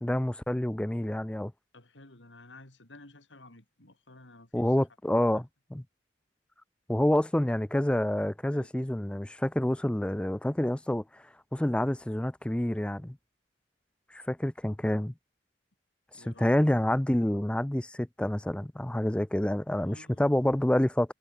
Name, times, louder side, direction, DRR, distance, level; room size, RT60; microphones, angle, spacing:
voice 1, 0.0-1.5 4.5-5.8 6.9-11.0 11.5-13.2 14.1-15.1 16.2-21.1, left 1 dB, 5° left, 0.4 m, -28 dB
voice 2, 1.7-4.9 5.2-5.4 8.5-8.8 16.1-16.5 19.7-20.4, left 2 dB, 90° left, 4.3 m, -53 dB
head